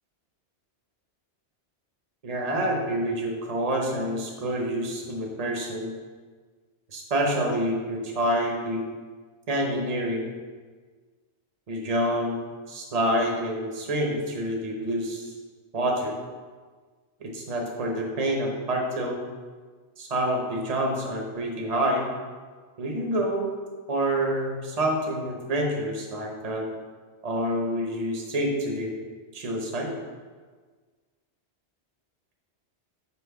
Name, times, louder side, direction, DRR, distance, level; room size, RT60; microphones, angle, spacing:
voice 1, 2.2-5.9 6.9-8.8 9.5-10.3 11.7-12.4 12.7-15.3 15.7-16.1 17.2-19.2 20.0-22.1 22.8-23.5 23.9-26.6 27.2-28.9 29.3-29.9, right 1 dB, 35° right, 0 dB, 1.1 m, -27 dB
6.2 x 4.5 x 5.8 m, 1.5 s
omnidirectional pair, 1.2 m